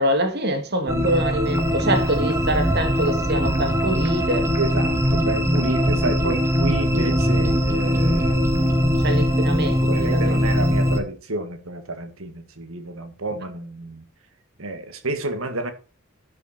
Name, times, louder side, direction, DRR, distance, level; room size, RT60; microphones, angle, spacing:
voice 1, 0.0-4.5 9.0-10.3, right 1 dB, 50° right, 2.3 m, -24 dB
voice 2, 0.7-1.1 4.6-9.0 9.8-14.0 14.6-15.7, right 2 dB, 80° right, 2.0 m, -30 dB
sound 1, 0.9-11.0, equal, 15° right, 1.5 m, -21 dB
12.0 x 7.0 x 4.4 m
head